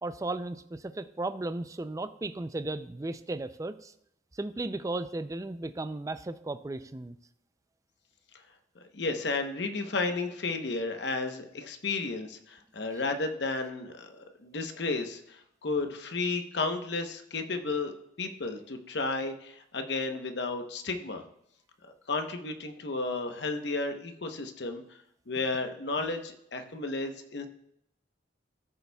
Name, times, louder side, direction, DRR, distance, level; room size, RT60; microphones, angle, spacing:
voice 1, 0.0-3.9 4.3-7.2, right 2 dB, 15° right, 12 dB, 0.3 m, -35 dB
voice 2, 8.9-21.2 21.8-24.8 25.3-27.5, left 3 dB, 65° left, 6 dB, 0.9 m, -33 dB
13.5 x 6.8 x 2.3 m, 0.75 s
head